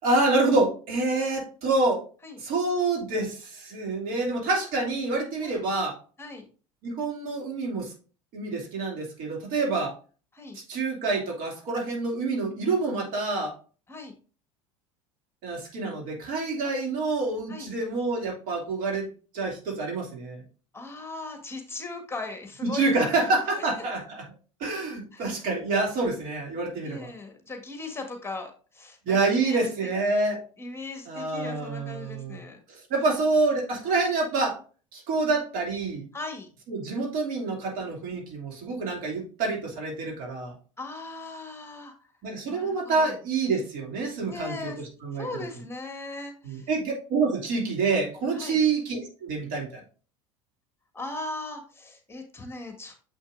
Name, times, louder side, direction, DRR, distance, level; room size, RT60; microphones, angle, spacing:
voice 1, 0.0-2.0 2.4-6.0 6.8-7.9 8.3-9.9 10.7-13.5 15.4-19.1 19.3-20.4 22.6-24.2 24.6-27.1 29.0-30.4 31.1-32.4 32.7-34.6 34.9-36.0 36.7-40.5 42.2-45.3 46.4-49.8, right 3 dB, 60° right, 0 dB, 2.5 m, -27 dB
voice 2, 20.7-23.3 23.6-23.7 25.1-25.4 26.8-29.9 30.6-32.6 36.1-36.5 40.8-41.9 42.5-43.2 44.3-44.9 45.1-46.7 48.3-48.6 50.9-52.9, left 3 dB, 15° left, 4 dB, 1.5 m, -38 dB
7.1 x 6.0 x 2.5 m, 0.38 s
hypercardioid pair, 80°, 16 cm